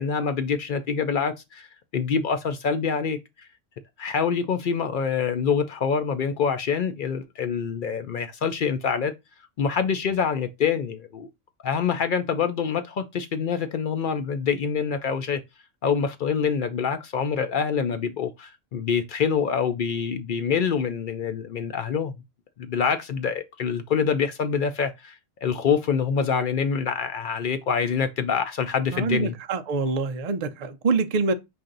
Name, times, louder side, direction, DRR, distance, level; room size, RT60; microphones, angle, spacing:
voice 1, 0.0-1.7 1.9-3.2 4.0-9.1 9.6-11.3 11.6-15.4 15.8-22.1 22.6-25.1 25.4-29.3, left 6 dB, 65° left, 0.5 m, -25 dB
voice 2, 28.9-31.3, right 4 dB, 90° right, 0.3 m, -25 dB
5.5 x 2.6 x 3.8 m
omnidirectional pair, 1.4 m